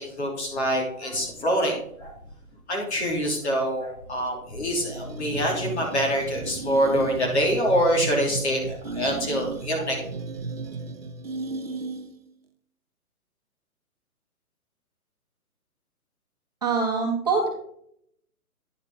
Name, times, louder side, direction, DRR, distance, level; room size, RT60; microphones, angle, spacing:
voice 1, 0.1-2.1 2.7-10.0, equal, 45° left, -1 dB, 3.1 m, -25 dB
sound 1, 4.8-12.3, right 4 dB, 45° right, 0.5 m, -35 dB
voice 2, 16.6-17.5, right 4 dB, 25° right, -2 dB, 1.2 m, -24 dB
9.6 x 6.3 x 3.8 m, 0.70 s
hypercardioid pair, 175°, 45 cm